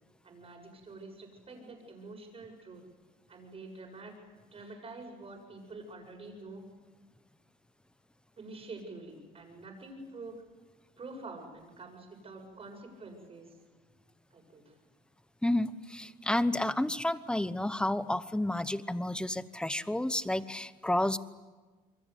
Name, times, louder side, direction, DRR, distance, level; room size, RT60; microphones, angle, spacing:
voice 1, 0.2-2.8 3.3-4.2 4.5-6.6 8.4-10.4 11.0-13.6 14.3-14.7, right 3 dB, 35° right, 3 dB, 7.7 m, -47 dB
voice 2, 15.4-21.2, left 1 dB, 5° left, 14 dB, 1.0 m, -30 dB
28.0 x 23.5 x 8.3 m, 1.3 s
cardioid pair, 110°, 17 cm